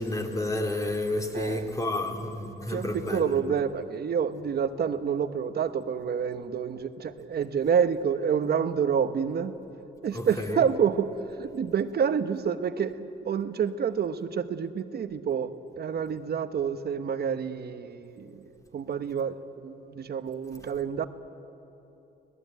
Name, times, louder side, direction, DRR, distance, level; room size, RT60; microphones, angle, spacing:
voice 1, 0.0-3.4 10.1-10.6, left 1 dB, 15° left, 3 dB, 2.9 m, -30 dB
voice 2, 1.3-1.7 2.7-9.5 10.0-18.4 18.7-21.1, right 7 dB, 55° right, 10 dB, 1.1 m, -28 dB
25.0 x 18.0 x 9.4 m, 2.9 s
cardioid pair, 90°, 20 cm